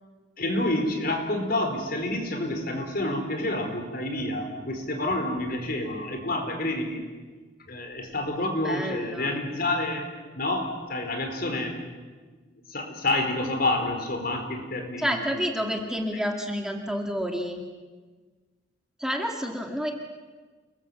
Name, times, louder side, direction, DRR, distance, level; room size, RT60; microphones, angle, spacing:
voice 1, 0.4-7.0 7.7-11.8 12.7-15.7 16.1-16.2, left 1 dB, 55° left, 4 dB, 4.7 m, -29 dB
voice 2, 8.4-9.4 15.0-17.6 19.0-19.9, equal, 5° right, 2 dB, 2.0 m, -29 dB
29.5 x 21.0 x 8.1 m, 1.4 s
head